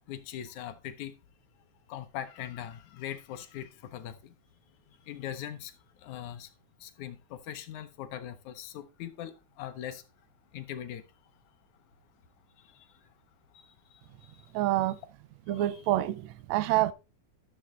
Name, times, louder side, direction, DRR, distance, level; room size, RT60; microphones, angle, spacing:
voice 1, 0.1-1.1 1.9-4.3 5.0-5.7 6.0-6.5 6.8-10.0 10.5-11.0 12.6-12.9 13.5-14.5 15.5-15.7, left 10 dB, 75° left, 2.0 m, -41 dB
voice 2, 14.5-15.0 15.5-16.9, right 15 dB, 80° right, 1.5 m, -27 dB
12.5 x 6.4 x 3.1 m
omnidirectional pair, 3.5 m